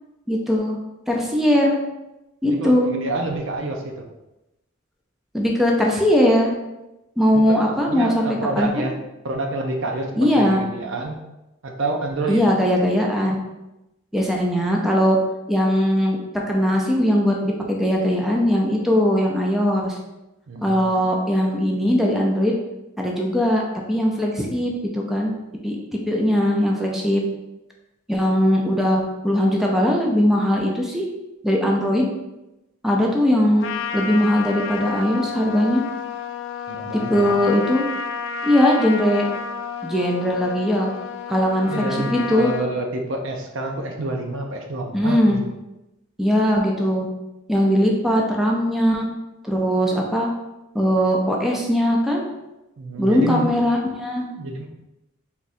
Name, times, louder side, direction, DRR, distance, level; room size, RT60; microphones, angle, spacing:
voice 1, 0.3-0.8 1.1-1.8 2.4-2.9 5.3-6.5 7.2-8.8 10.2-10.6 12.3-13.4 14.1-15.2 15.5-20.0 20.6-22.5 23.0-23.6 23.9-25.3 25.6-27.2 28.1-31.0 31.4-32.0 32.8-33.6 33.9-35.8 36.9-37.9 38.4-39.3 39.8-40.9 41.3-42.5 44.9-45.4 46.2-47.1 47.5-49.1 49.4-50.3 50.7-52.2 53.0-54.3, equal, ahead, -1 dB, 0.5 m, -20 dB
voice 2, 2.4-4.1 7.3-9.0 9.2-11.2 11.6-12.4 20.5-21.0 36.7-37.4 41.7-45.4 52.8-53.7 54.4-54.7, right 2 dB, 65° right, 3 dB, 0.6 m, -28 dB
Trumpet, 33.6-42.7, left 6 dB, 65° left, 0.3 m, -31 dB
3.6 x 2.3 x 4.1 m, 0.96 s
head